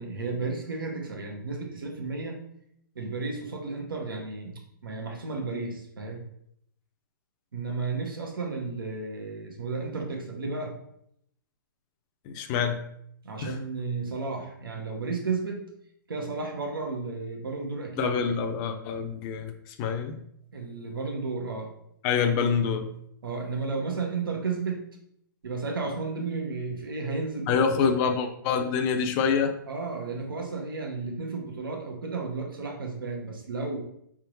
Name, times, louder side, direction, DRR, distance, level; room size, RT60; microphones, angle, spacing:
voice 1, 0.0-2.4 2.9-6.2 7.5-10.7 13.2-15.6 16.1-18.2 20.5-21.7 23.2-24.8 25.4-27.9 29.7-33.8, right 4 dB, 90° right, 2 dB, 1.1 m, -33 dB
voice 2, 12.3-12.8 13.4-13.6 18.0-20.2 22.0-22.9 27.5-29.5, left 6 dB, 30° left, 5 dB, 0.5 m, -26 dB
4.9 x 3.6 x 3.0 m, 0.72 s
hypercardioid pair, 140°, 11 cm